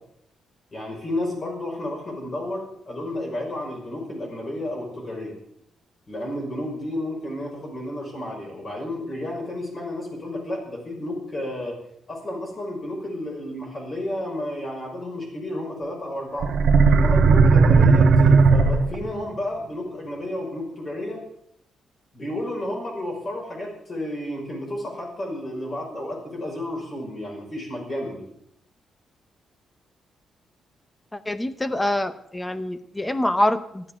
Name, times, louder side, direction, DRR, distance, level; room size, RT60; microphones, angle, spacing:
voice 1, 0.7-5.3 6.1-11.8 12.1-16.5 16.9-21.2 22.1-28.3, left 1 dB, 30° left, 0 dB, 5.6 m, -31 dB
sound 1, 16.4-19.2, right 4 dB, 55° right, 1.5 m, -15 dB
voice 2, 31.1-33.9, left 1 dB, 10° left, 11 dB, 0.8 m, -25 dB
13.5 x 12.5 x 6.4 m, 0.72 s
wide cardioid pair, 175°, 0 cm